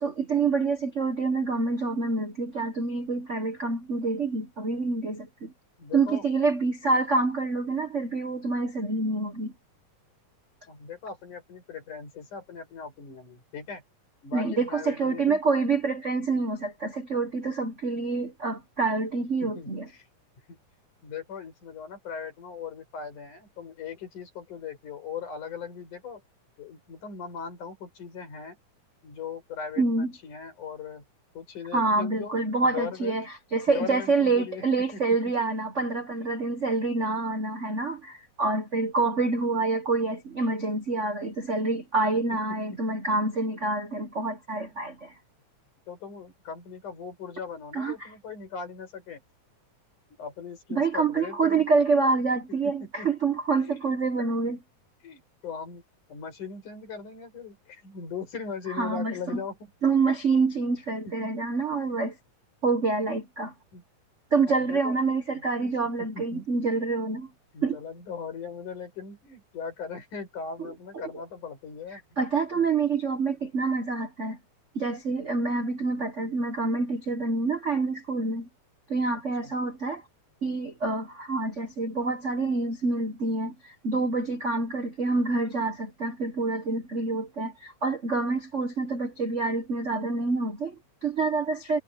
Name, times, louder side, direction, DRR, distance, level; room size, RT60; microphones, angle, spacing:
voice 1, 0.0-5.5 5.9-9.5 14.3-19.9 29.8-30.1 31.7-33.2 33.5-45.1 47.7-48.1 50.7-54.6 58.7-59.4 59.8-62.2 62.6-63.5 64.3-67.3 67.6-67.8 70.6-70.7 72.2-74.4 74.7-78.5 78.9-80.0 80.4-91.8, right 3 dB, 80° right, 0.6 m, -27 dB
voice 2, 5.8-6.2 10.7-13.8 14.2-15.4 19.4-20.1 20.5-20.6 21.0-26.2 26.6-28.6 29.0-31.0 31.3-32.3 32.6-33.2 33.7-34.6 34.9-35.0 36.2-36.3 42.3-42.6 44.7-44.8 45.9-49.2 50.2-51.6 52.6-53.1 53.6-53.9 55.0-55.8 56.1-59.7 61.0-61.3 63.7-63.8 64.5-65.0 65.3-65.7 66.0-66.9 67.5-72.0 72.5-72.7 79.4-79.5, left 6 dB, 75° left, 6.6 m, -39 dB
omnidirectional pair, 3.6 m